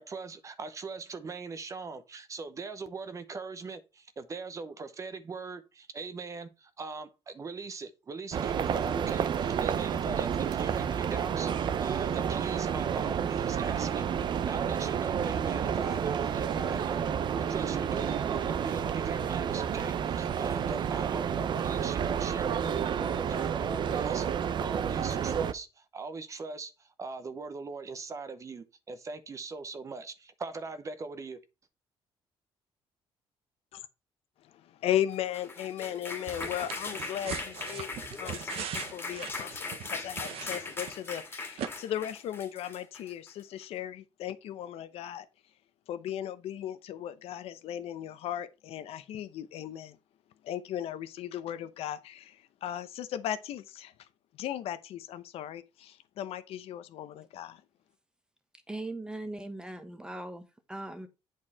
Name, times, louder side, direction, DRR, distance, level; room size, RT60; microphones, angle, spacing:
voice 1, 0.0-24.3 24.6-31.4, right 4 dB, 30° right, 0.9 m, -40 dB
sound 1, 8.3-25.5, right 8 dB, 50° right, 0.6 m, -30 dB
voice 2, 34.4-37.9 38.2-45.3 45.9-50.0 50.4-53.9 54.4-57.6, left 11 dB, 75° left, 0.8 m, -37 dB
sound 2, 35.1-43.4, left 3 dB, 20° left, 2.0 m, -39 dB
sound 3, 36.3-41.2 41.6-41.7, right 8 dB, 75° right, 1.0 m, -40 dB
voice 3, 58.7-61.1, right 2 dB, 10° right, 1.2 m, -39 dB
8.6 x 4.6 x 4.2 m
cardioid pair, 130°, 10 cm